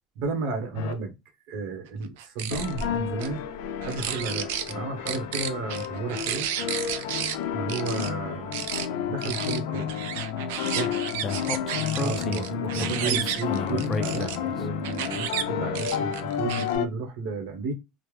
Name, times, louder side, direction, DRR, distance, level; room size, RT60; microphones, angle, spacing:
voice 1, 0.2-1.1 1.5-3.5 3.8-6.5 7.5-8.7 9.1-9.9 10.7-11.0 12.0-17.7, right 4 dB, 60° right, 1.0 m, -33 dB
sound 1, 0.7-0.9 2.5-16.9, left 9 dB, 85° left, 0.5 m, -31 dB
sound 2, 2.2-2.8 3.2-3.3 3.8-4.7 5.1-7.4 7.7-8.1 8.5-8.9 9.2-14.4 14.8-15.4 15.7-16.8, right 10 dB, 90° right, 0.4 m, -32 dB
Speech, 11.2-14.6, left 3 dB, 25° left, 0.4 m, -33 dB
3.3 x 2.0 x 3.1 m
cardioid pair, 150°, 0 cm